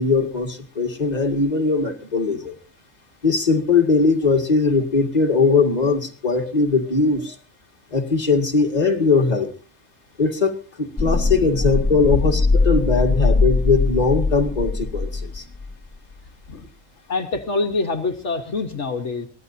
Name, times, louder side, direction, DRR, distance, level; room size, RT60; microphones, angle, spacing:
voice 1, 0.0-2.5 3.2-7.4 7.9-9.5 10.2-15.4, left 4 dB, 30° left, 2 dB, 2.0 m, -20 dB
sound 1, 11.0-15.9 16.1-16.2, left 3 dB, 15° left, 0.7 m, -21 dB
voice 2, 17.1-19.3, left 3 dB, 60° left, 4 dB, 1.6 m, -25 dB
24.0 x 17.5 x 2.7 m, 0.35 s
omnidirectional pair, 1.4 m